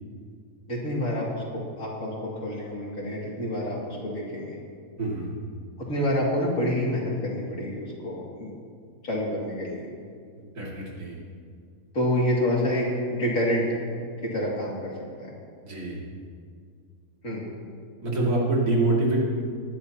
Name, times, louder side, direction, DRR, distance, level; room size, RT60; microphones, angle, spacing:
voice 1, 0.7-4.6 5.8-8.5 9.0-9.9 11.9-13.6 14.2-14.9 15.2-15.3 17.2-17.4, left 1 dB, 60° left, -4 dB, 2.9 m, -28 dB
voice 2, 5.0-5.3 10.4-11.2 15.6-16.1 18.0-19.2, right 2 dB, 80° right, -4 dB, 2.8 m, -26 dB
20.5 x 10.5 x 2.9 m, 2.2 s
omnidirectional pair, 1.6 m